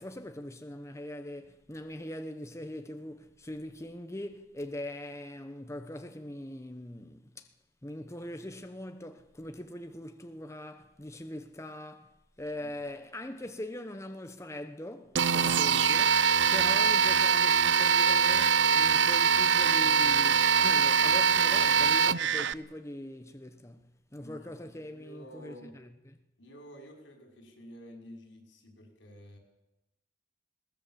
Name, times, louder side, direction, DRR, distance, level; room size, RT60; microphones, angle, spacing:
voice 1, 0.0-7.5 7.8-23.8 24.1-26.2, left 1 dB, 15° left, 1.0 m, -42 dB
sound 1, 15.2-22.5, right 7 dB, 75° right, 0.7 m, -23 dB
voice 2, 24.2-24.5 24.9-25.8 26.4-29.4, equal, 80° left, 5.8 m, -50 dB
21.0 x 19.0 x 7.6 m
head